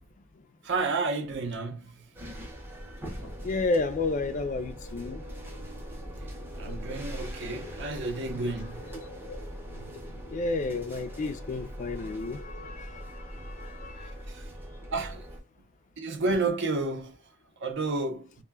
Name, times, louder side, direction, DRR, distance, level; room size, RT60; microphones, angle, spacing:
voice 1, 0.6-2.0 6.5-8.8 14.3-14.5 14.9-15.3 16.0-17.2 17.6-18.3, right 3 dB, 55° right, 0.6 m, -31 dB
sound 1, 2.1-15.4, equal, 10° right, 0.6 m, -41 dB
sound 2, 3.2-11.5, left 3 dB, 80° left, 0.6 m, -50 dB
voice 2, 3.4-5.2 10.3-14.2, left 3 dB, 35° left, 0.3 m, -31 dB
2.1 x 2.1 x 3.3 m
head